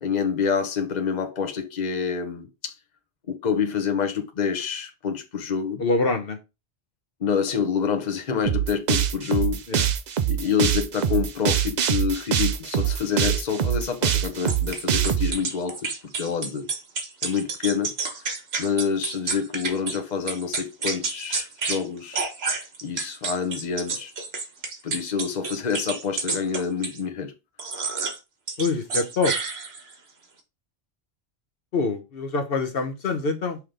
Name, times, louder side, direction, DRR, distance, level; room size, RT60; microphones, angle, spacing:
voice 1, 0.0-2.8 3.3-5.8 7.2-9.6 10.3-16.7 17.2-17.9 18.6-22.2 22.8-24.1 24.8-27.3, left 6 dB, 45° left, 1.0 m, -27 dB
voice 2, 5.8-6.4 9.7-9.9 28.6-29.3 31.7-33.6, left 3 dB, 65° left, 1.1 m, -25 dB
sound 1, 8.5-15.3, right 9 dB, 55° right, 0.6 m, -23 dB
sound 2, 14.5-20.0 20.3-21.8 22.1-27.0 27.6-28.2 28.5-29.9, right 4 dB, 80° right, 1.4 m, -29 dB
5.8 x 3.2 x 5.0 m
omnidirectional pair, 1.0 m